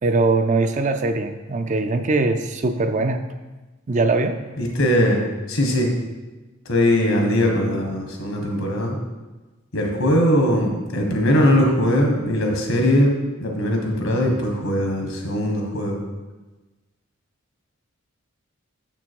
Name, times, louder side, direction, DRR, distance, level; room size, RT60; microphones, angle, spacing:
voice 1, 0.0-3.2 3.9-4.4, right 3 dB, 35° right, 8 dB, 0.4 m, -21 dB
voice 2, 4.6-5.2 5.5-5.9 6.6-9.0 9.7-16.0, equal, 75° left, 1 dB, 1.7 m, -20 dB
7.0 x 6.0 x 4.6 m, 1.2 s
head